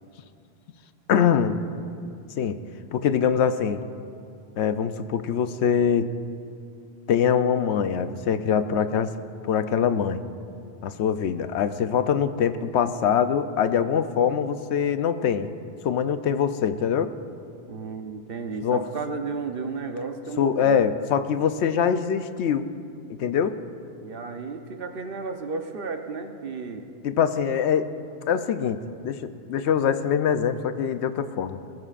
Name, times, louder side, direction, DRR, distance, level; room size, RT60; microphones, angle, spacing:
voice 1, 1.1-1.6 2.4-2.6 2.9-3.8 4.6-6.1 7.1-9.1 9.5-10.2 10.8-15.5 15.8-17.1 18.6-18.8 20.4-22.7 23.2-23.6 27.0-27.9 28.3-31.6, left 7 dB, 85° left, 11 dB, 0.9 m, -23 dB
voice 2, 17.7-20.8 24.0-26.9, right 4 dB, 60° right, 6 dB, 1.0 m, -33 dB
20.0 x 15.5 x 2.5 m, 2.4 s
omnidirectional pair, 1.1 m